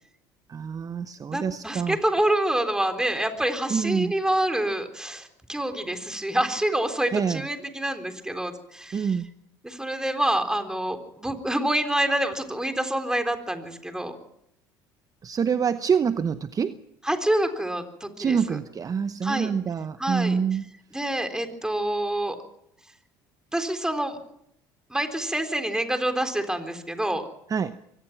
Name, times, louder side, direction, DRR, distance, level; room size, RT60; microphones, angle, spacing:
voice 1, 0.5-2.0 3.7-4.1 7.1-7.5 8.9-9.3 15.2-16.8 18.2-20.6 27.5-27.8, right 6 dB, 35° right, 13 dB, 0.8 m, -26 dB
voice 2, 1.3-9.1 9.6-14.2 17.1-18.4 19.2-19.5 20.0-20.4 20.9-22.4 23.5-24.2 24.9-27.3, right 1 dB, 5° right, 7 dB, 3.8 m, -27 dB
24.0 x 18.5 x 6.0 m, 0.76 s
hypercardioid pair, 75°, 11 cm